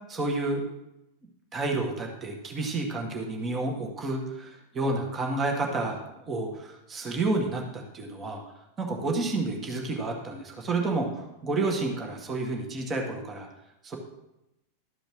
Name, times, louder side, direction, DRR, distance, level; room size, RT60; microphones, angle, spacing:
voice 1, 0.1-0.6 1.5-8.4 8.8-13.5 13.8-14.0, right 2 dB, 20° right, 1 dB, 1.8 m, -30 dB
13.0 x 5.1 x 6.2 m, 0.90 s
figure-of-eight pair, 90°, 0 cm